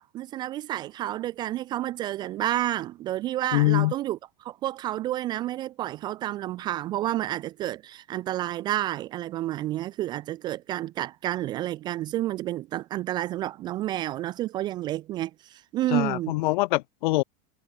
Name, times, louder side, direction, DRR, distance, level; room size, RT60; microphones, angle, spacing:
voice 1, 0.0-16.3, right 14 dB, 15° right, 0.4 m, -30 dB
voice 2, 3.5-3.9 15.9-17.2, left 19 dB, 50° left, 1.5 m, -23 dB
supercardioid pair, 175°, 30 cm